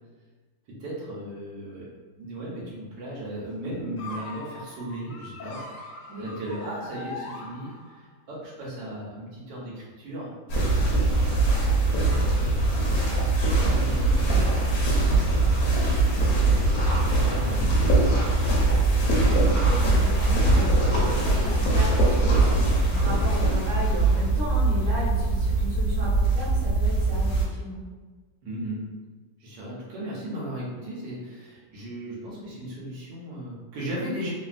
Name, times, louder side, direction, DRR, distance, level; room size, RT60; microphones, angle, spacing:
voice 1, 0.7-1.9 2.2-5.8 6.2-10.3 10.9-15.5 16.0-16.4 17.0-18.3 28.4-28.8 29.4-34.3, right 1 dB, 70° right, -6 dB, 1.4 m, -37 dB
sound 1, 4.0-8.1, left 2 dB, 80° left, 0.7 m, -40 dB
sound 2, 10.5-27.4, right 2 dB, 65° left, 1.0 m, -22 dB
voice 2, 16.4-17.0 19.0-27.8, equal, 45° right, -12 dB, 0.4 m, -35 dB
3.3 x 2.3 x 2.4 m, 1.3 s
omnidirectional pair, 2.1 m